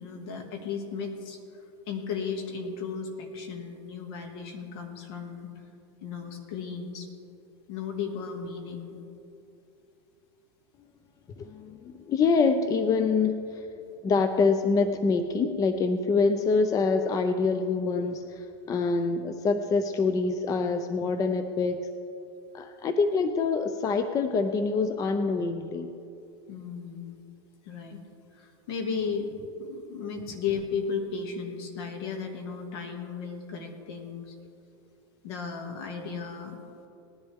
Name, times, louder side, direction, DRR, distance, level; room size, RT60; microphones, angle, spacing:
voice 1, 0.0-1.4 1.9-5.5 6.0-7.1 7.7-9.0 26.5-27.2 27.7-28.0 28.3-29.3 29.6-34.4 35.2-36.6, left 5 dB, 65° left, 3 dB, 2.1 m, -35 dB
voice 2, 11.4-13.6 14.0-21.8 22.5-25.9, left 4 dB, 25° left, 8 dB, 0.5 m, -25 dB
19.0 x 10.5 x 3.6 m, 2.7 s
supercardioid pair, 130°, 14 cm